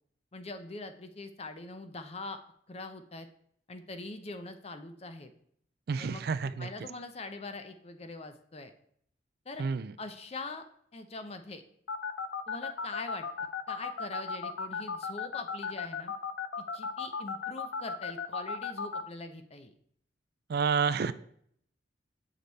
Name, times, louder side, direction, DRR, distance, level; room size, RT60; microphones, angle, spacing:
voice 1, 0.3-2.4 2.7-3.3 3.7-5.3 6.0-8.7 9.5-9.6 10.0-10.6 10.9-11.6 12.5-13.3 13.7-16.1 16.7-19.7, left 3 dB, 35° left, 8 dB, 0.7 m, -43 dB
voice 2, 5.9-6.7 9.6-9.9 20.5-21.1, right 5 dB, 55° right, 14 dB, 0.4 m, -29 dB
sound 1, 11.9-19.0, left 5 dB, 80° left, 0.5 m, -35 dB
7.7 x 5.1 x 4.1 m, 0.67 s
head